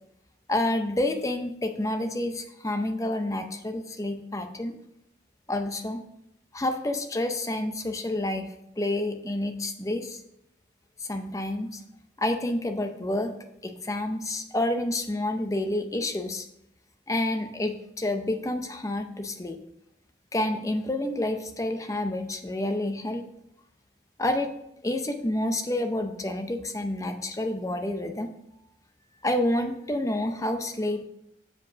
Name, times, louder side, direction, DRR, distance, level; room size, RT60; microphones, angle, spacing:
voice 1, 0.5-4.8 5.5-6.0 6.5-10.2 11.0-11.8 12.2-13.3 13.6-16.5 17.1-19.6 20.3-23.3 24.2-24.5 24.8-28.3 29.2-31.0, left 1 dB, 15° left, 7 dB, 0.5 m, -29 dB
7.5 x 5.0 x 5.0 m, 0.80 s
head